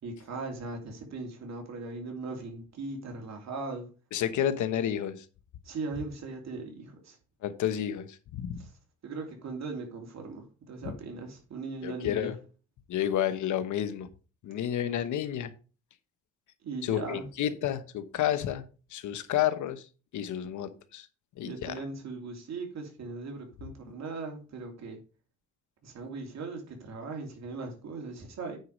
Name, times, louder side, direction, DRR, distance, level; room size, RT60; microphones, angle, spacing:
voice 1, 0.0-3.9 5.6-7.2 8.6-8.7 9.0-12.3 16.6-17.3 21.4-25.0 25.8-28.6, right 3 dB, 60° right, 2.8 m, -39 dB
voice 2, 4.1-5.2 7.4-8.6 10.8-10.9 11.8-12.4 12.9-14.1 14.4-15.5 16.8-18.6 18.9-19.8 20.1-21.1 21.4-21.7, left 10 dB, 75° left, 1.1 m, -30 dB
9.4 x 4.8 x 5.2 m
cardioid pair, 90°, 30 cm